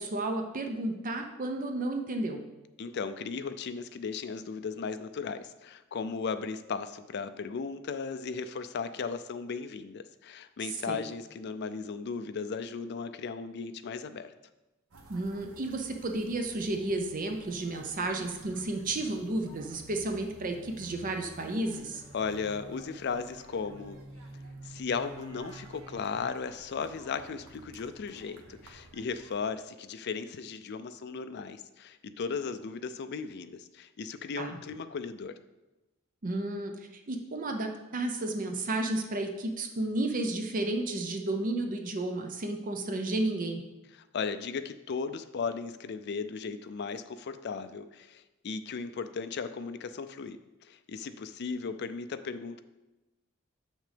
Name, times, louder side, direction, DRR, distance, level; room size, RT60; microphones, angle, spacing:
voice 1, 0.0-2.4 10.9-11.0 15.1-22.0 34.4-34.6 36.2-43.6, right 2 dB, 40° right, 4 dB, 0.6 m, -32 dB
voice 2, 2.8-14.3 22.1-24.0 24.6-35.4 43.9-50.4 50.6-52.6, left 5 dB, 50° left, 11 dB, 0.4 m, -36 dB
sound 1, 14.9-29.4, right 2 dB, 80° right, 1.0 m, -51 dB
7.5 x 6.3 x 3.4 m, 1.0 s
head